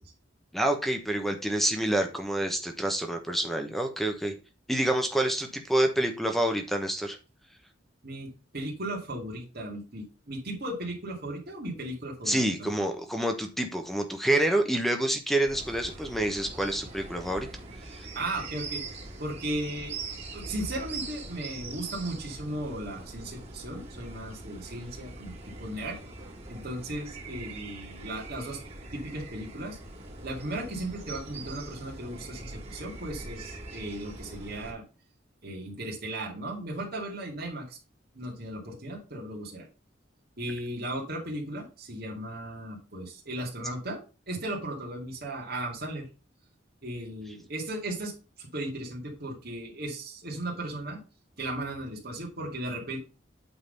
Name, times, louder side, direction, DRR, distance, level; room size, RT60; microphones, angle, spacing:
voice 1, 0.5-4.3 4.7-7.2 12.3-17.5 18.0-18.1, right 1 dB, ahead, 5 dB, 1.0 m, -27 dB
voice 2, 8.0-12.8 18.1-18.8 19.2-20.0 20.3-25.3 25.6-26.0 26.5-28.6 28.9-29.8 30.2-34.8 35.4-37.8 38.1-39.7 40.4-44.0 44.3-46.1 46.8-48.1 48.4-51.0 51.4-53.0, right 1 dB, 55° right, -2 dB, 2.5 m, -36 dB
sound 1, 15.5-34.7, right 2 dB, 30° right, 3.1 m, -42 dB
8.7 x 4.0 x 5.3 m, 0.33 s
head